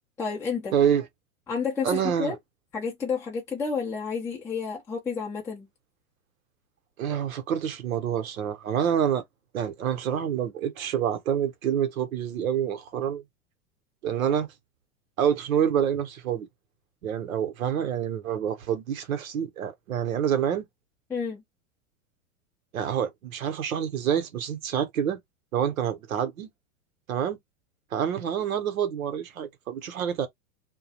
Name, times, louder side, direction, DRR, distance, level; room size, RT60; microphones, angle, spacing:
voice 1, 0.2-0.8 1.5-2.4 2.7-5.7 21.1-21.4, left 5 dB, 5° left, 0.4 m, -30 dB
voice 2, 0.7-1.1 1.8-2.4 7.0-9.2 9.5-13.2 14.0-14.5 15.2-16.5 17.0-20.7 22.7-25.2 25.5-26.5 27.1-27.4 27.9-30.3, right 9 dB, 80° right, 0.8 m, -27 dB
2.3 x 2.0 x 2.7 m
hypercardioid pair, 100°, 41 cm